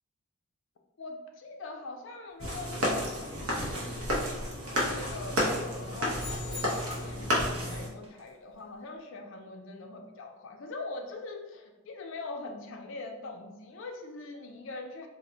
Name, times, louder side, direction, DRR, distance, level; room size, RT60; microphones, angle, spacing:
voice 1, 1.0-4.1 4.7-15.1, left 3 dB, 60° left, 4 dB, 0.4 m, -42 dB
sound 1, 2.4-2.7 3.2-5.0 6.7-8.8, right 1 dB, 25° right, 0.3 m, -44 dB
sound 2, 2.4-7.9, equal, 85° right, 0.7 m, -31 dB
sound 3, 6.2-7.3, left 5 dB, ahead, 0.7 m, -43 dB
2.1 x 2.0 x 3.7 m, 1.1 s
head